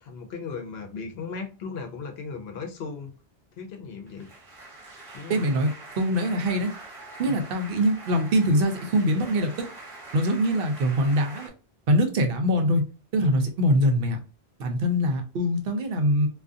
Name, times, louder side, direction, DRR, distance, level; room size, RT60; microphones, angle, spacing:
voice 1, 0.0-3.1 3.6-4.3 5.1-5.4 7.3-7.4, left 4 dB, 75° left, 0.9 m, -36 dB
sound 1, 4.1-11.5, right 2 dB, 30° right, 1.0 m, -44 dB
voice 2, 5.3-6.7 7.2-9.5 10.1-11.5 11.9-12.8 13.1-14.2 14.6-16.3, equal, 65° right, 0.8 m, -23 dB
2.4 x 2.3 x 2.5 m
omnidirectional pair, 1.0 m